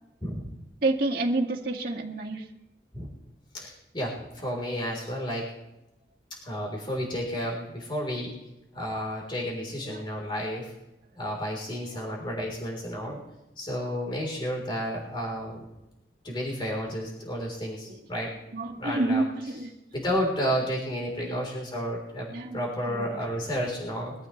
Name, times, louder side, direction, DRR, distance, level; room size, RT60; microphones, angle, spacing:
voice 1, 0.8-2.4 9.9-10.0 18.5-19.7 21.2-21.4 22.3-23.1, right 2 dB, 55° right, -2 dB, 2.2 m, -29 dB
voice 2, 3.5-5.5 6.4-8.3 8.7-10.7 11.2-13.2 13.6-15.7 16.2-18.4 18.8-19.2 19.9-24.1, equal, 25° left, -2 dB, 3.9 m, -31 dB
22.5 x 14.0 x 3.3 m, 0.91 s
head